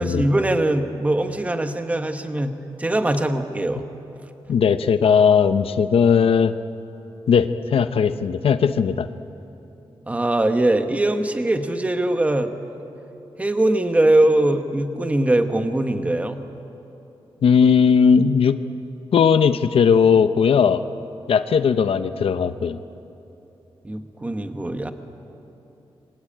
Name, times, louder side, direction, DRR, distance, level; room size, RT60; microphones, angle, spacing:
voice 1, 0.0-2.5 2.8-3.9 10.1-12.5 13.4-16.4 23.8-24.9, right 1 dB, 15° right, 7 dB, 1.3 m, -21 dB
voice 2, 4.5-6.5 7.3-9.1 17.4-18.6 19.1-20.8 21.3-22.8, left 6 dB, 75° left, 11 dB, 0.9 m, -17 dB
27.0 x 23.5 x 8.9 m, 3.0 s
wide cardioid pair, 170°, 10 cm